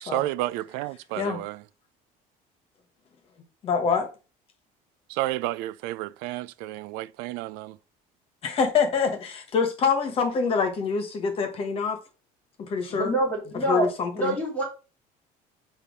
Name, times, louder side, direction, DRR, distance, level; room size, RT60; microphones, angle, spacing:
voice 1, 0.0-1.6 5.1-7.8, right 16 dB, 85° right, 0.5 m, -31 dB
voice 2, 3.6-4.1 8.4-12.0 12.6-13.1 13.7-14.4, left 5 dB, 35° left, 1.5 m, -25 dB
voice 3, 13.0-13.9 14.1-14.6, right 2 dB, 10° left, 2.6 m, -26 dB
8.4 x 3.1 x 5.4 m
cardioid pair, 165°, 16 cm